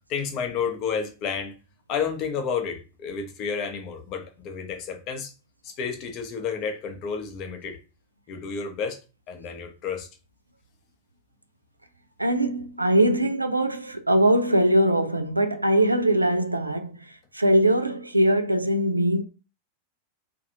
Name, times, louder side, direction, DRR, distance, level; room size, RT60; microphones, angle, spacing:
voice 1, 0.1-1.5 1.9-5.3 5.6-7.8 8.3-9.0 9.3-10.1, left 6 dB, 40° left, 0.7 m, -31 dB
voice 2, 12.2-19.2, right 1 dB, 85° right, 0.3 m, -22 dB
2.6 x 2.5 x 2.6 m
figure-of-eight pair, 90°, 0 cm